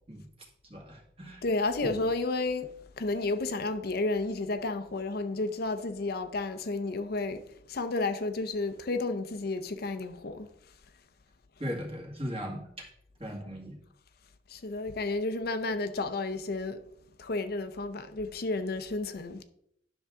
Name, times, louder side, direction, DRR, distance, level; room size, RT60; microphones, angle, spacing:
voice 1, 0.7-1.4 1.8-1.9 11.6-12.9 13.2-13.8, equal, 30° right, 2.0 m, -38 dB
voice 2, 1.4-2.7 3.0-7.4 7.7-10.5 14.5-16.8 17.2-19.4, left 3 dB, 55° left, 0.6 m, -31 dB
10.0 x 6.1 x 3.6 m
head